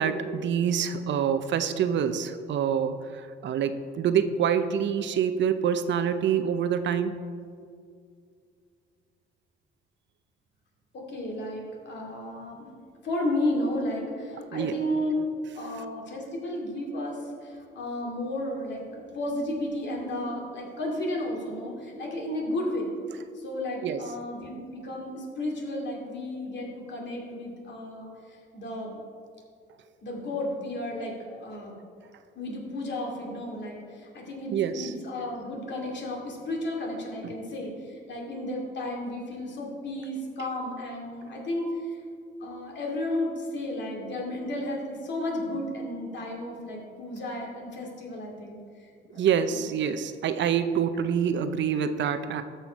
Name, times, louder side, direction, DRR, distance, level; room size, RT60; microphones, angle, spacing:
voice 1, 0.0-7.1 14.5-14.7 23.8-24.0 34.5-34.9 49.1-52.4, right 8 dB, 65° right, 10 dB, 0.6 m, -26 dB
voice 2, 10.9-12.7 13.0-15.3 15.5-22.9 23.3-29.0 30.0-31.8 32.3-42.0 42.4-49.9, left 1 dB, 65° left, -1 dB, 2.5 m, -33 dB
13.5 x 5.7 x 4.6 m, 2.2 s
cardioid pair, 90°, 20 cm